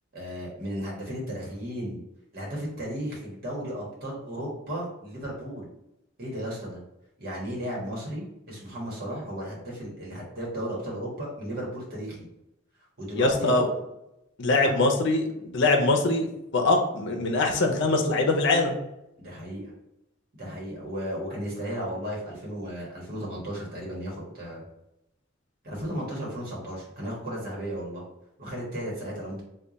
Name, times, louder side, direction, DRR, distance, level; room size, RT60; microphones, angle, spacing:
voice 1, 0.1-2.0 2.3-5.7 6.2-6.8 7.2-12.3 13.0-13.5 14.6-14.7 19.2-19.7 20.4-24.6 25.6-28.0 28.4-29.4, equal, 50° right, -4 dB, 1.4 m, -34 dB
voice 2, 13.2-13.7 14.4-16.3 16.5-18.8, left 2 dB, 65° left, 2 dB, 0.6 m, -23 dB
3.4 x 2.3 x 3.9 m, 0.86 s
head